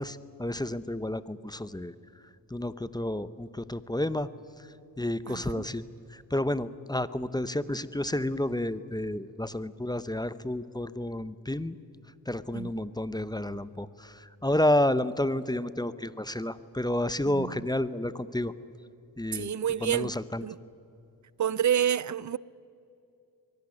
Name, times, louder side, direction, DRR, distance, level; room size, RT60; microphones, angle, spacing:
voice 1, 0.0-1.9 2.5-4.3 5.0-5.8 6.1-11.7 12.3-18.5 19.2-19.5 19.8-20.4, left 1 dB, 10° left, 0.9 m, -30 dB
voice 2, 5.2-5.7 12.5-12.8 17.3-17.6 19.3-20.1 20.4-20.6 21.4-22.4, right 10 dB, 40° right, 0.6 m, -29 dB
23.5 x 17.5 x 9.9 m
supercardioid pair, 50°, 43 cm